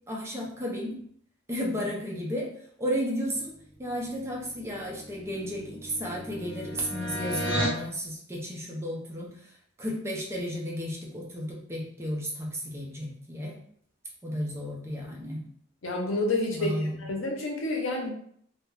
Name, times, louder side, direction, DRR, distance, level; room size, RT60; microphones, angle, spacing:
voice 1, 0.1-1.0 1.5-2.5 2.8-13.6 14.2-15.4 16.5-17.1, equal, 15° right, -2 dB, 0.5 m, -33 dB
sound 1, 4.6-7.8, equal, 20° left, 1.0 m, -34 dB
voice 2, 15.8-18.1, left 2 dB, 80° left, 0 dB, 0.7 m, -29 dB
2.3 x 2.1 x 3.0 m, 0.64 s
head